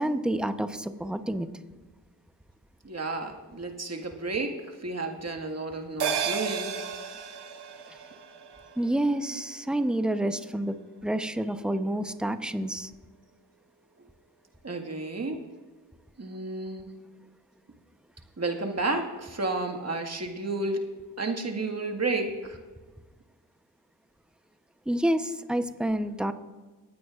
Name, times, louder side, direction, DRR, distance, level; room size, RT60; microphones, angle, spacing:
voice 1, 0.0-1.5 8.8-10.8 11.0-12.9 24.9-26.3, right 1 dB, ahead, 9 dB, 0.8 m, -28 dB
voice 2, 2.8-6.7 14.6-15.4 16.2-16.9 18.4-20.8 21.2-22.6, right 3 dB, 35° right, 3 dB, 1.8 m, -31 dB
sound 1, 6.0-10.7 11.0-11.1, right 7 dB, 60° right, 1.1 m, -35 dB
24.0 x 9.3 x 2.5 m, 1.3 s
supercardioid pair, 45°, 44 cm